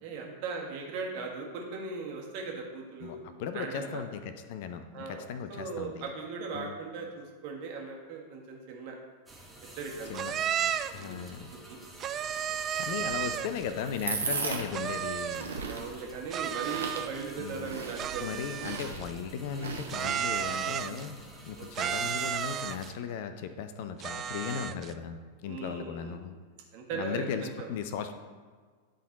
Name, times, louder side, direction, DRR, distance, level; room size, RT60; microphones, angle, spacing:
voice 1, 0.0-3.2 3.5-4.0 4.9-9.0 9.8-10.5 10.9-11.2 11.5-11.8 13.0-13.1 15.6-18.4 20.8-21.0 21.6-21.9 25.4-26.3 26.7-27.7, right 4 dB, 45° right, 0 dB, 1.5 m, -39 dB
voice 2, 3.0-6.1 6.5-6.7 10.1-10.3 10.9-11.5 12.8-15.5 17.4-17.8 18.2-26.3 26.9-28.1, left 7 dB, 50° left, 9 dB, 0.5 m, -37 dB
sound 1, 9.3-22.9, right 1 dB, 10° right, 1.2 m, -50 dB
sound 2, 10.1-11.0 12.0-13.6 14.7-15.6 16.3-17.3 18.0-19.1 19.9-21.1 21.7-22.9 24.0-24.9, right 9 dB, 30° right, 0.3 m, -33 dB
sound 3, 12.9-20.4, right 5 dB, 70° right, 1.0 m, -38 dB
10.5 x 3.8 x 4.0 m, 1.6 s
figure-of-eight pair, 90°, 0 cm